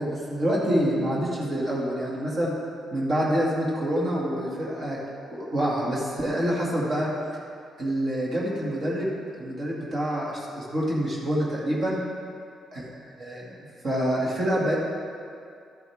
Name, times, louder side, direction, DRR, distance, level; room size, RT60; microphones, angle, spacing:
voice 1, 0.0-2.6 2.9-5.0 5.3-7.1 7.8-12.0 13.2-13.6 13.8-14.8, equal, 45° right, -5 dB, 2.4 m, -26 dB
13.0 x 8.2 x 3.6 m, 2.4 s
cardioid pair, 100°, 0 cm